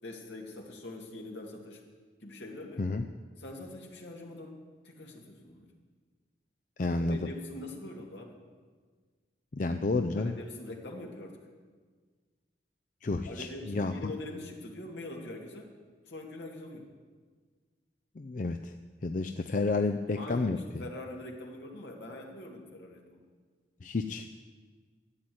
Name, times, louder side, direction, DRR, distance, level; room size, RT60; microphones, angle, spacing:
voice 1, 0.0-1.8 2.2-2.9 3.4-4.6 4.8-5.7 7.0-8.4 10.2-11.4 13.3-15.7 16.1-16.9 20.2-23.2, left 1 dB, 80° left, 0 dB, 2.2 m, -43 dB
voice 2, 6.8-7.2 9.5-10.3 13.0-13.9 18.2-18.7 19.0-20.6 23.8-24.3, left 3 dB, 45° left, 7 dB, 0.4 m, -30 dB
12.5 x 9.1 x 7.8 m, 1.5 s
head